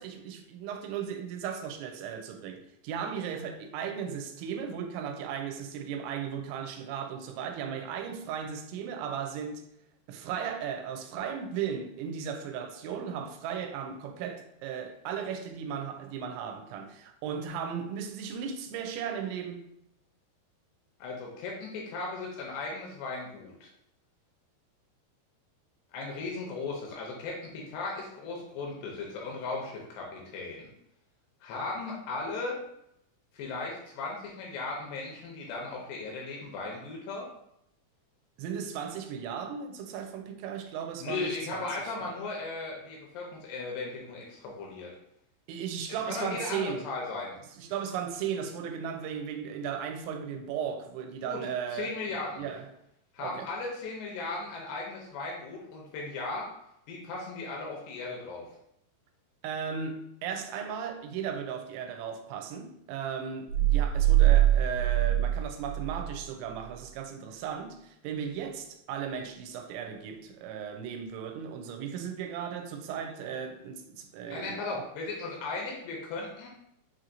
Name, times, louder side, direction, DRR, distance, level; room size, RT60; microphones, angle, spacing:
voice 1, 0.0-9.7 10.1-19.8 38.4-42.1 45.5-46.9 47.6-52.0 52.4-52.7 53.2-53.5 59.4-74.9, right 7 dB, 90° right, 2.9 m, -36 dB
voice 2, 21.0-23.7 25.9-30.7 31.4-32.6 33.3-37.3 41.0-44.9 45.9-47.4 51.3-51.4 51.7-52.4 53.1-56.5 56.9-58.5 74.3-76.5, left 3 dB, 80° left, 2.6 m, -37 dB
sound 1, 63.5-66.2, right 13 dB, 70° right, 2.3 m, -23 dB
6.9 x 2.9 x 2.5 m
omnidirectional pair, 5.2 m